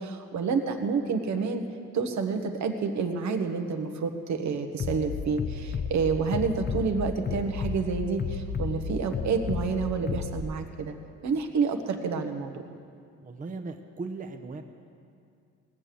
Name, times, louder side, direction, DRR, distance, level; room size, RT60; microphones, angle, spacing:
voice 1, 0.0-1.6 1.9-10.9 11.2-12.6, right 5 dB, 65° right, 5 dB, 1.3 m, -29 dB
Bass drum, 4.8-10.4, left 5 dB, 35° left, 0.6 m, -32 dB
voice 2, 13.2-14.6, right 3 dB, 25° right, 5 dB, 0.8 m, -37 dB
18.5 x 6.8 x 7.7 m, 2.3 s
cardioid pair, 90°, 30 cm